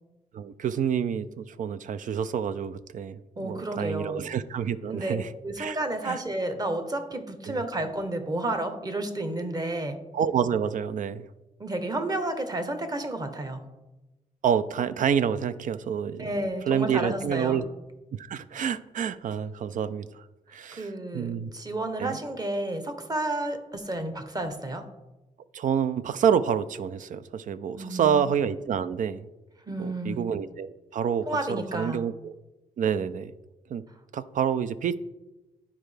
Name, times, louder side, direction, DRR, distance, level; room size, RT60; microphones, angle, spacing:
voice 1, 0.3-5.3 5.6-5.8 6.0-6.2 7.5-7.6 10.1-11.3 14.4-16.3 16.7-17.6 18.1-20.2 20.5-21.5 22.0-22.2 25.5-29.3 29.8-32.3 32.8-33.3 33.7-33.8 34.1-35.0, right 8 dB, 60° right, 14 dB, 0.4 m, -28 dB
voice 2, 3.4-4.2 4.9-5.2 5.4-10.0 11.6-13.6 16.2-17.6 20.7-24.9 27.8-28.2 29.7-30.2 31.3-32.0, right 1 dB, 25° right, 8 dB, 0.9 m, -31 dB
11.0 x 4.6 x 3.3 m, 1.0 s
cardioid pair, 85°, 15 cm